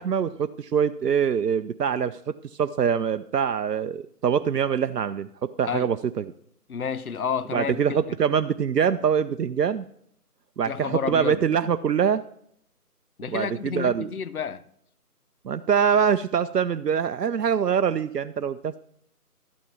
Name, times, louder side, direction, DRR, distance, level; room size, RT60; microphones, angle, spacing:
voice 1, 0.0-6.3 7.5-9.9 10.6-12.2 13.3-14.1 15.4-18.8, right 7 dB, 85° right, 0.6 m, -24 dB
voice 2, 6.7-8.0 10.7-11.4 13.2-14.6, left 7 dB, 65° left, 0.6 m, -30 dB
12.5 x 6.3 x 5.9 m
figure-of-eight pair, 160°, 47 cm